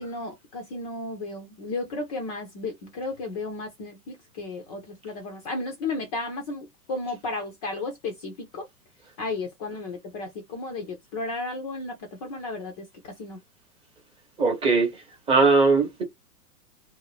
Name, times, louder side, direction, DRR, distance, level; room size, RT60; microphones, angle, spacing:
voice 1, 0.0-8.7 9.2-13.4, left 3 dB, 25° left, 0.5 m, -34 dB
voice 2, 14.4-14.9 15.3-16.0, right 3 dB, 10° right, 0.7 m, -19 dB
2.6 x 2.1 x 3.1 m
figure-of-eight pair, 110°, 47 cm